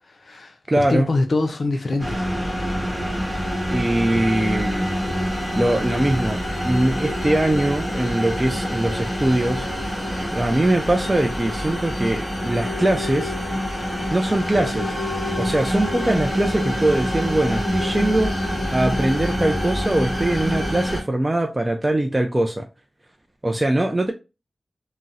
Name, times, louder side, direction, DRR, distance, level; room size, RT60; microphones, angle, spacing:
voice 1, 0.1-2.3, left 2 dB, 60° left, 0.4 m, -24 dB
voice 2, 0.7-1.1 3.7-4.9 5.6-9.7 10.3-13.3 14.1-14.9 15.4-22.6 23.4-24.1, right 1 dB, 20° right, 0.3 m, -22 dB
sound 1, 2.0-21.0, equal, 10° left, 1.4 m, -26 dB
3.9 x 2.0 x 2.4 m
wide cardioid pair, 110°, 0 cm